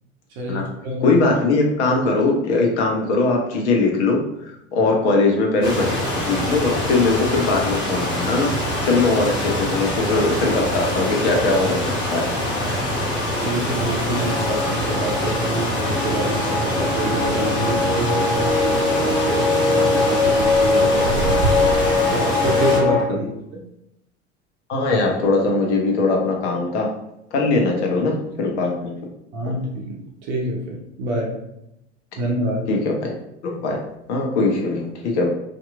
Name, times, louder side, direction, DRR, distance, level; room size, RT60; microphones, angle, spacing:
voice 1, 0.4-1.2 4.8-4.9 13.3-21.8 22.1-23.6 29.3-30.0 30.3-31.4 32.2-32.7, right 1 dB, 55° right, -2 dB, 0.7 m, -27 dB
voice 2, 1.0-4.2 4.7-5.9 6.3-8.5 8.8-12.2 23.1-23.3 24.7-26.9 27.3-28.9 32.7-33.1 33.4-33.8 34.1-35.3, left 3 dB, 65° left, 1 dB, 0.7 m, -20 dB
sound 1, 5.6-22.8, equal, 85° left, 1.1 m, -24 dB
sound 2, 14.1-23.0, left 3 dB, 5° left, 0.4 m, -22 dB
2.8 x 2.5 x 2.3 m, 0.83 s
figure-of-eight pair, 70°, 36 cm